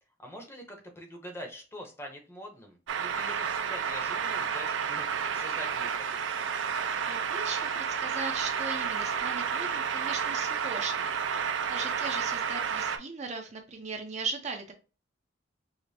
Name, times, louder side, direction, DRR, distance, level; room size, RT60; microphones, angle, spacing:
voice 1, 0.2-6.2, equal, 15° left, 2 dB, 0.7 m, -44 dB
sound 1, 2.9-13.0, right 7 dB, 85° right, 0.5 m, -31 dB
voice 2, 7.0-11.1 11.7-14.7, right 4 dB, 40° right, 4 dB, 0.6 m, -38 dB
4.9 x 2.0 x 2.7 m, 0.33 s
head